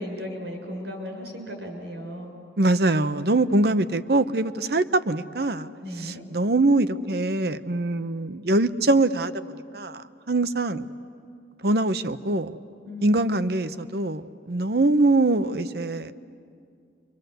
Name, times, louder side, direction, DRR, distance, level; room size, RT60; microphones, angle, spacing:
voice 1, 0.0-2.3 3.4-3.8 5.8-6.2 12.8-13.5, left 1 dB, 85° right, 2 dB, 6.5 m, -36 dB
voice 2, 2.6-5.7 6.0-10.9 11.6-12.6 13.0-16.1, right 2 dB, 60° right, 12 dB, 0.8 m, -23 dB
30.0 x 25.0 x 8.0 m, 2.3 s
head